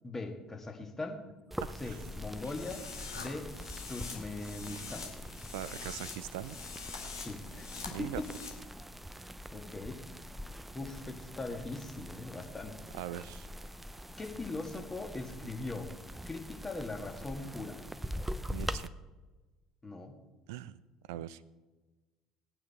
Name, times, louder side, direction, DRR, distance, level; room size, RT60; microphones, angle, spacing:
voice 1, 0.0-1.2 1.8-2.8 3.1-3.5 3.9-5.1 7.2-8.3 9.1-10.0 10.7-12.8 14.2-15.9 16.3-17.8 19.8-20.2, left 2 dB, 20° left, 3 dB, 2.0 m, -40 dB
sound 1, 1.5-18.9, equal, 5° right, 0.6 m, -44 dB
voice 2, 1.6-2.0 5.5-6.6 7.9-8.2 12.9-13.5 18.5-18.9 20.5-20.8 21.1-21.4, right 13 dB, 65° right, 19 dB, 0.5 m, -41 dB
sound 2, 1.7-8.5, left 5 dB, 80° left, 1.9 m, -46 dB
19.5 x 9.1 x 4.4 m, 1.2 s
figure-of-eight pair, 60°, 2 cm